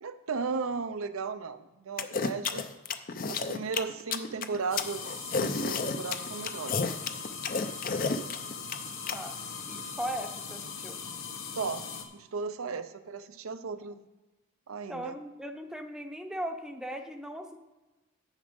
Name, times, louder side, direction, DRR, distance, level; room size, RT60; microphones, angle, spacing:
voice 1, 0.0-2.6 3.3-6.9 8.6-8.7 11.6-13.9 14.7-15.2, right 4 dB, 85° right, 10 dB, 0.6 m, -36 dB
sound 1, 2.0-9.2, left 4 dB, 40° left, 0.6 m, -31 dB
sound 2, 4.7-12.0, left 5 dB, 75° left, 1.1 m, -40 dB
voice 2, 9.7-11.0 12.6-12.8 14.9-17.6, equal, 5° right, 5 dB, 0.7 m, -38 dB
10.0 x 6.4 x 5.2 m, 1.1 s
head